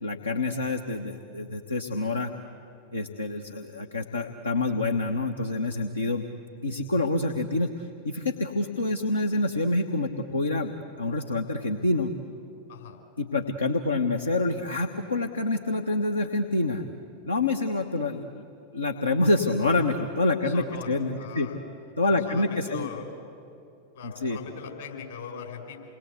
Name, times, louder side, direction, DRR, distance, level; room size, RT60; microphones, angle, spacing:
voice 1, 0.0-2.3 2.9-6.2 6.6-12.1 13.2-16.8 17.2-18.5 18.7-21.5 22.0-22.9 24.0-24.4, left 2 dB, 80° left, 4 dB, 1.2 m, -27 dB
voice 2, 12.7-13.0 20.4-21.6 22.0-23.1 23.9-25.8, left 6 dB, 60° left, 2 dB, 5.3 m, -40 dB
28.5 x 21.0 x 8.2 m, 2.5 s
figure-of-eight pair, 90°, 0 cm